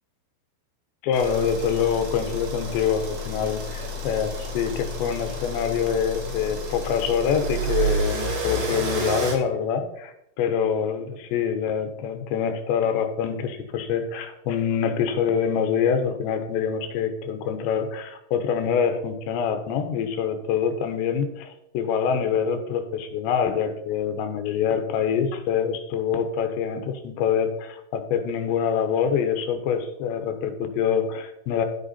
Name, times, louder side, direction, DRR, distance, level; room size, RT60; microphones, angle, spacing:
voice 1, 1.0-31.7, left 7 dB, 85° left, 7 dB, 3.3 m, -25 dB
sound 1, 1.1-9.3, right 1 dB, 65° right, 3.9 m, -30 dB
11.0 x 8.1 x 4.2 m, 0.79 s
omnidirectional pair, 5.0 m